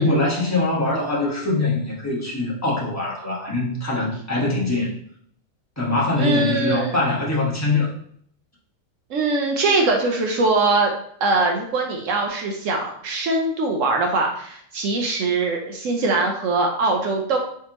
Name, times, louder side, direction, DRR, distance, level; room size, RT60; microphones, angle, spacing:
voice 1, 0.0-5.0 5.8-7.9, left 2 dB, 10° left, -6 dB, 1.1 m, -23 dB
voice 2, 6.2-7.0 9.1-10.9 11.2-17.4, right 3 dB, 70° right, 2 dB, 0.9 m, -22 dB
4.5 x 3.5 x 2.9 m, 0.65 s
omnidirectional pair, 1.5 m